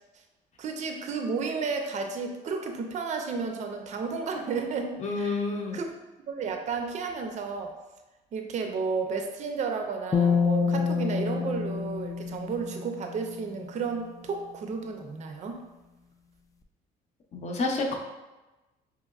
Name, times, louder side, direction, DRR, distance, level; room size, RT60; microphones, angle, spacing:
voice 1, 0.6-5.4 5.7-5.9 6.3-7.7 8.3-15.6, right 5 dB, 45° right, 5 dB, 0.5 m, -32 dB
voice 2, 5.0-5.8 17.3-18.0, left 3 dB, 40° left, 1 dB, 0.7 m, -30 dB
sound 1, 10.1-13.5, left 6 dB, 20° left, 0.3 m, -27 dB
5.2 x 2.9 x 2.4 m, 1.1 s
cardioid pair, 110°, 17 cm